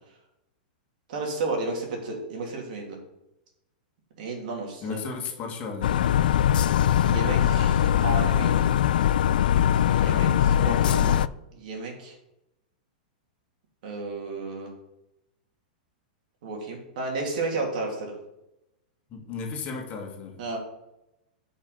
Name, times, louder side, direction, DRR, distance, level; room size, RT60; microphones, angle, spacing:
voice 1, 1.1-3.0 4.2-5.0 7.0-8.7 9.6-11.2 11.5-12.2 13.8-14.7 16.4-18.2 20.4-20.6, right 3 dB, 65° right, 1 dB, 2.9 m, -32 dB
voice 2, 4.8-6.0 19.1-20.4, left 5 dB, 35° left, 2 dB, 2.0 m, -34 dB
sound 1, 5.8-11.3, left 10 dB, 80° left, 0.3 m, -21 dB
8.7 x 5.6 x 5.1 m, 0.87 s
hypercardioid pair, 140°, 5 cm